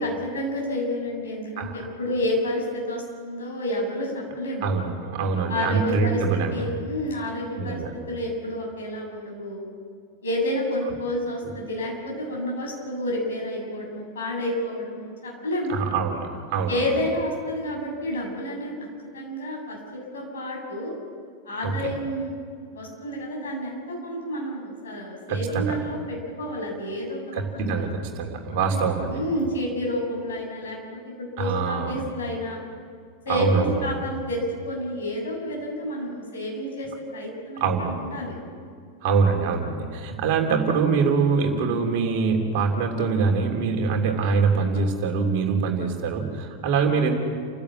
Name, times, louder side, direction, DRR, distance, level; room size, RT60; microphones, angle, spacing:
voice 1, 0.0-4.7 5.5-6.2 6.5-7.8 8.1-9.6 10.2-15.7 16.7-18.9 19.1-20.9 21.4-22.3 22.7-27.8 28.7-28.8 29.1-32.6 33.2-38.4, left 1 dB, 65° left, -1 dB, 7.9 m, -30 dB
voice 2, 4.6-6.6 7.6-7.9 15.7-16.8 21.6-21.9 25.3-25.8 27.3-29.2 31.4-32.0 33.3-33.9 37.6-38.0 39.0-47.2, right 5 dB, 45° right, 3 dB, 3.2 m, -24 dB
30.0 x 15.5 x 7.5 m, 2.2 s
figure-of-eight pair, 90°, 0 cm